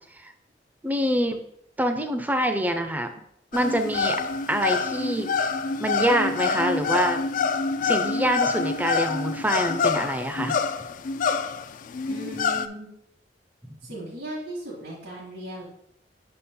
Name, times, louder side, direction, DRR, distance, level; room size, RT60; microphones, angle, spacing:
voice 1, 0.8-1.4 1.8-3.1 3.5-4.2 4.5-5.3 5.8-7.2 7.8-10.6, right 1 dB, 10° right, 7 dB, 0.5 m, -25 dB
sound 1, 3.5-12.7, left 5 dB, 50° left, 0.3 m, -26 dB
voice 2, 12.1-12.9 13.8-15.6, right 1 dB, 70° right, -8 dB, 2.2 m, -37 dB
6.2 x 4.3 x 3.7 m, 0.73 s
head